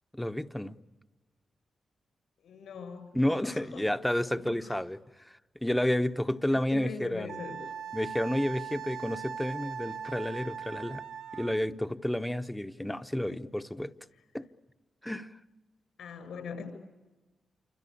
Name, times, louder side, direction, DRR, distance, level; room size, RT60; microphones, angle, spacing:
voice 1, 0.1-0.8 3.1-7.4 7.9-11.0 11.3-13.9 14.3-14.4 15.0-15.3, left 1 dB, 5° left, 0.9 m, -31 dB
voice 2, 2.4-3.8 4.3-4.8 6.5-7.6 12.8-13.0 13.3-13.4 16.0-16.7, left 6 dB, 85° left, 7.2 m, -42 dB
Wind instrument woodwind instrument, 7.3-11.6, right 7 dB, 85° right, 1.5 m, -40 dB
28.0 x 25.0 x 8.5 m
cardioid pair, 105°, 0 cm